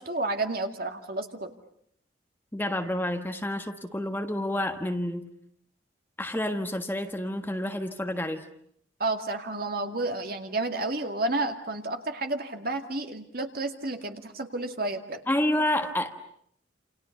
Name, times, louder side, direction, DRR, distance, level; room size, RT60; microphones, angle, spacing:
voice 1, 0.0-1.5 9.0-15.2, right 2 dB, 50° right, 5 dB, 2.3 m, -31 dB
voice 2, 2.5-5.3 6.2-8.4 15.3-16.1, left 1 dB, 10° left, 5 dB, 1.5 m, -29 dB
29.0 x 28.5 x 6.8 m, 0.68 s
head